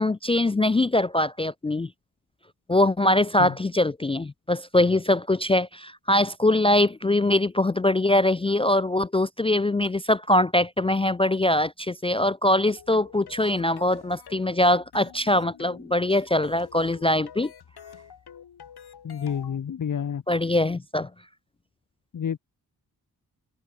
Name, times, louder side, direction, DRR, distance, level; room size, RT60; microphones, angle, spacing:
voice 1, 0.0-1.9 2.7-17.5 20.3-21.1, left 1 dB, 15° left, 0.3 m, -22 dB
sound 1, 12.7-19.6, left 8 dB, 85° left, 2.7 m, -47 dB
voice 2, 19.0-20.2 22.1-22.4, left 8 dB, 55° left, 0.9 m, -29 dB
wide cardioid pair, 85°, 38 cm